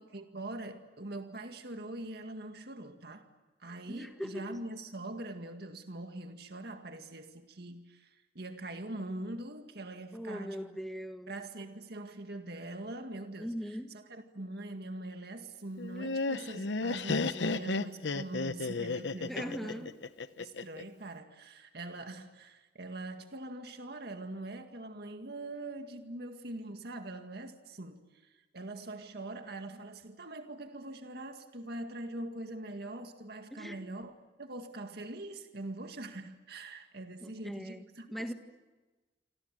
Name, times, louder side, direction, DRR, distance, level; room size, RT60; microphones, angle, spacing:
voice 1, 0.0-3.3 3.6-10.6 11.3-13.6 13.9-19.9 20.4-38.3, right 2 dB, 65° right, 2.0 m, -43 dB
voice 2, 3.9-4.6 10.1-11.3 13.4-13.9 19.3-19.9 33.5-33.8 37.2-37.8 38.1-38.3, equal, ahead, 1.5 m, -40 dB
Laughter, 15.8-20.8, left 3 dB, 90° left, 0.9 m, -33 dB
27.0 x 26.5 x 7.6 m
head